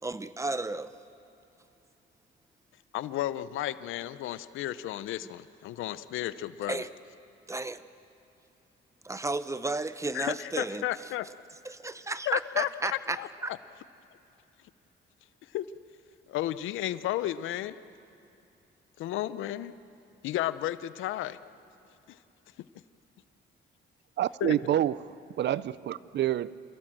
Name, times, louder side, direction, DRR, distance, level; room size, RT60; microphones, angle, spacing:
voice 1, 0.0-0.9 6.6-6.9 7.5-7.8 9.0-10.8 11.6-13.5, right 2 dB, 15° right, 0.9 m, -33 dB
voice 2, 2.9-6.8 10.1-11.3 12.3-13.6 15.5-15.7 16.3-17.8 19.0-19.7 20.2-21.4 22.1-22.2 24.4-24.5, left 13 dB, 85° left, 0.7 m, -33 dB
voice 3, 24.2-26.5, right 11 dB, 60° right, 0.6 m, -28 dB
27.0 x 17.0 x 7.5 m
cardioid pair, 90°, 20 cm